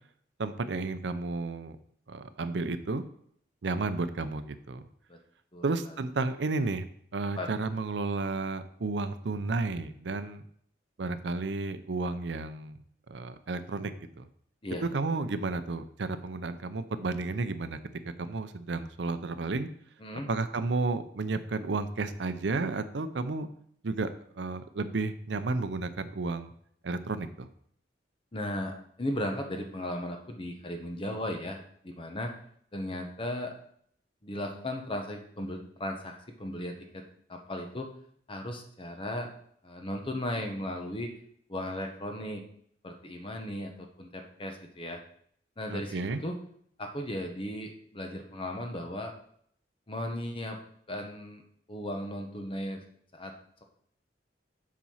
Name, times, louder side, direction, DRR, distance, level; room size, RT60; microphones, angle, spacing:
voice 1, 0.4-1.8 2.1-3.0 3.6-4.9 5.6-6.9 7.1-10.4 11.0-12.8 13.1-14.3 14.8-17.8 18.2-19.7 20.3-23.5 23.8-26.5 26.8-27.5 45.7-46.2, right 3 dB, 70° right, 11 dB, 0.6 m, -32 dB
voice 2, 28.3-32.3 32.7-33.5 34.2-37.0 37.3-37.9 38.3-39.3 39.6-41.1 41.5-42.4 42.8-43.7 44.0-45.0 45.6-46.4 46.8-49.1 49.9-50.6 50.9-51.4 51.7-52.8 53.1-53.3, left 1 dB, 30° left, 4 dB, 1.0 m, -36 dB
7.5 x 4.2 x 5.6 m, 0.64 s
head